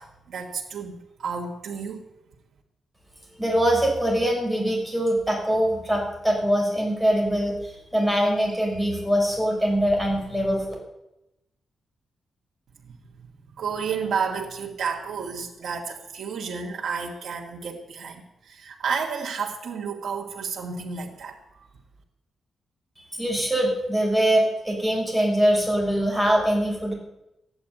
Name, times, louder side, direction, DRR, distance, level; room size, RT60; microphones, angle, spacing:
voice 1, 0.0-2.0 12.8-13.3 13.6-21.7, right 6 dB, 75° right, -2 dB, 2.4 m, -31 dB
voice 2, 3.4-10.7 23.1-26.9, equal, 5° right, -2 dB, 6.4 m, -23 dB
14.5 x 10.5 x 9.1 m, 0.90 s
wide cardioid pair, 135°, 0 cm